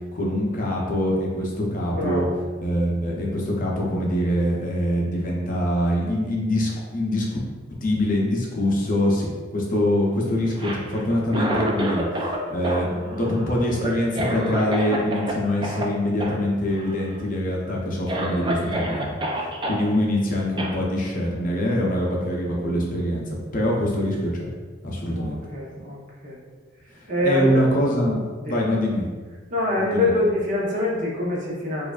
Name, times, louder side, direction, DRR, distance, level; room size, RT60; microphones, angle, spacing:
voice 1, 0.1-2.3 2.6-7.3 7.8-24.5 24.8-25.4 26.9-28.2 28.4-29.0 29.7-30.1, left 1 dB, 45° left, -2 dB, 0.6 m, -24 dB
voice 2, 2.0-2.3 25.1-26.4 27.1-27.6 28.4-28.6 29.5-31.9, left 1 dB, 45° right, -5 dB, 0.9 m, -24 dB
Cough, 10.5-12.4 12.6-15.3 15.6-15.8 16.2-16.4 16.7-17.2 17.6-17.7 18.1-19.8 20.6-20.7, right 1 dB, 25° right, 0.4 m, -28 dB
4.6 x 2.5 x 2.3 m, 1.5 s
head